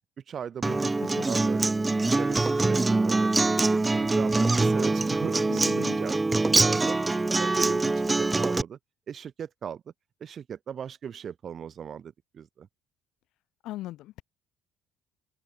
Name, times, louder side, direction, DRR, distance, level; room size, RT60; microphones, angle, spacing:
voice 1, 0.3-1.7 2.2-7.0 7.4-8.8 9.1-9.8 10.2-12.7, right 8 dB, 30° right, 2.7 m, -38 dB
Acoustic guitar, 0.6-8.6, right 3 dB, 10° right, 0.8 m, -24 dB
voice 2, 5.5-6.0 13.6-14.2, left 16 dB, 60° left, 3.2 m, -39 dB
cardioid pair, 175°, 0 cm